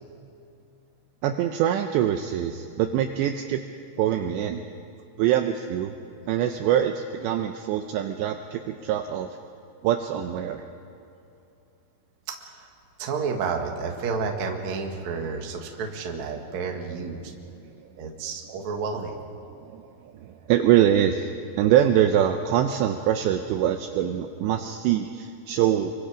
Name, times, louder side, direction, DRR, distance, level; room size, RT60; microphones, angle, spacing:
voice 1, 1.2-3.6 4.0-4.6 5.2-6.0 6.3-9.3 9.8-10.7 19.5-25.9, right 10 dB, 85° right, 6 dB, 2.6 m, -24 dB
voice 2, 13.0-17.2 18.0-19.2, right 5 dB, 55° right, 2 dB, 2.2 m, -30 dB
28.0 x 24.0 x 5.1 m, 2.7 s
omnidirectional pair, 5.9 m